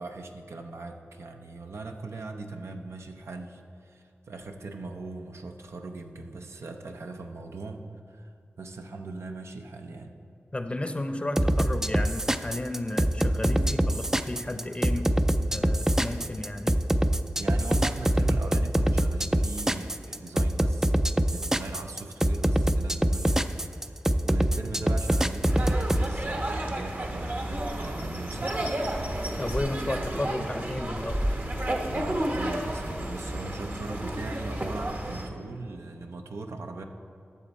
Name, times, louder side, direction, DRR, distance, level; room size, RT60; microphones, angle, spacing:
voice 1, 0.0-10.2 17.4-20.9 21.3-28.7 31.9-36.8, right 3 dB, 75° right, 4 dB, 0.7 m, -40 dB
voice 2, 10.5-15.1 15.5-16.7 29.4-31.2, left 1 dB, 25° left, 8 dB, 0.6 m, -33 dB
sound 1, 11.4-26.1, right 1 dB, 10° right, 0.3 m, -24 dB
sound 2, 25.4-35.3, right 1 dB, 45° right, 1.1 m, -31 dB
12.5 x 7.0 x 4.2 m, 2.4 s
wide cardioid pair, 55°, 5 cm